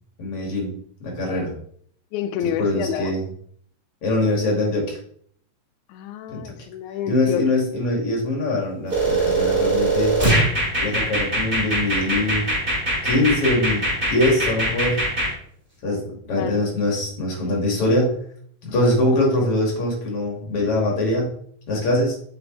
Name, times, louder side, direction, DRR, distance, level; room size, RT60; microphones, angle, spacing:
voice 1, 0.2-0.7 1.0-1.5 2.4-3.3 4.0-5.0 6.3-6.5 7.1-10.1 10.8-12.5 13.0-15.0 15.8-18.1 18.6-21.3 21.7-22.2, left 1 dB, 50° left, -1 dB, 3.2 m, -23 dB
voice 2, 2.1-3.1 5.9-7.5 16.3-16.6, left 9 dB, 85° left, 8 dB, 2.0 m, -28 dB
sound 1, 8.9-15.3, right 2 dB, 20° right, 2.7 m, -22 dB
7.7 x 6.2 x 4.0 m, 0.62 s
omnidirectional pair, 3.4 m